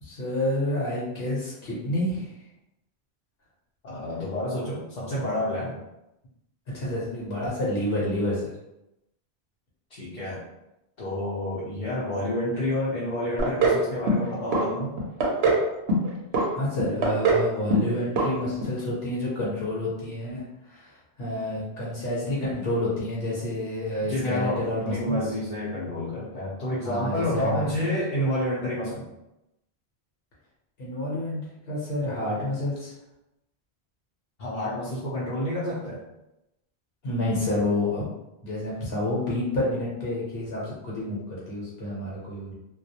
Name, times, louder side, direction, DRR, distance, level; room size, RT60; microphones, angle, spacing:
voice 1, 0.0-2.3 6.7-8.5 16.4-25.2 26.8-27.7 30.8-31.4 31.7-32.9 37.0-38.0 38.4-42.5, left 1 dB, 70° left, -7 dB, 1.0 m, -29 dB
voice 2, 3.8-5.8 9.9-10.4 11.0-15.0 24.0-29.1 34.4-36.0, left 1 dB, 50° left, -8 dB, 0.6 m, -29 dB
sound 1, 13.4-13.8 14.1-14.6 15.0-15.6 15.9-16.5 16.8-17.4 17.7-17.9 18.2-18.3 18.6-18.7, right 2 dB, 75° right, 0.8 m, -22 dB
2.3 x 2.0 x 2.7 m, 0.90 s
omnidirectional pair, 1.1 m